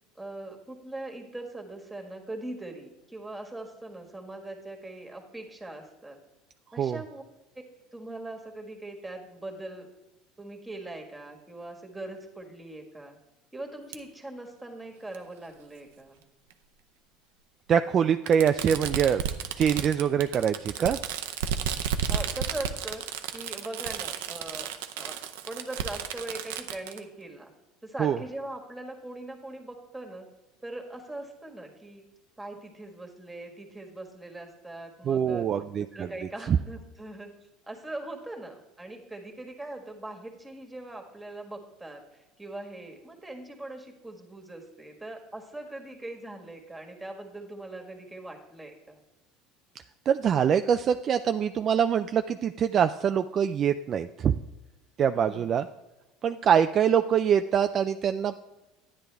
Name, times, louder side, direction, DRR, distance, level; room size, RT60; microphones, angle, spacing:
voice 1, 0.2-6.2 6.7-7.2 7.9-9.9 10.4-13.2 13.5-16.2 22.1-23.0 23.3-25.2 25.4-27.5 27.8-30.3 30.6-32.0 32.4-35.5 35.8-37.3 37.6-49.0 55.1-55.6, right 2 dB, 10° right, 3 dB, 1.7 m, -41 dB
Fireworks, 13.9-14.0 15.1-15.2 16.5-16.6 18.3-27.0, right 8 dB, 90° right, 0.6 m, -33 dB
voice 2, 17.7-19.2 19.6-21.0 28.0-28.2 35.1-36.1 36.5-36.6 50.1-54.3 55.0-55.7 56.2-58.4, right 8 dB, 40° right, 8 dB, 0.3 m, -24 dB
10.5 x 9.7 x 3.4 m, 1.0 s
supercardioid pair, 105°, 0 cm